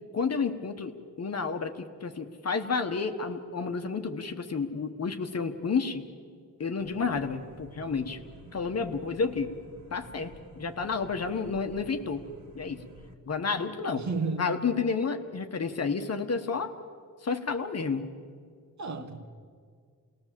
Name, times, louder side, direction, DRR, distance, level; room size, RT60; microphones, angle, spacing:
voice 1, 0.1-0.9 1.2-6.0 6.6-8.2 8.5-9.6 9.9-12.3 12.5-12.8 13.2-14.0 14.4-16.7 17.2-18.1, left 5 dB, 45° left, 1.2 m, -30 dB
sound 1, 6.8-13.1, right 2 dB, 65° right, 2.3 m, -51 dB
voice 2, 14.0-14.6 18.8-19.2, right 3 dB, 50° right, 1.6 m, -32 dB
28.0 x 19.5 x 7.5 m
wide cardioid pair, 170°, 36 cm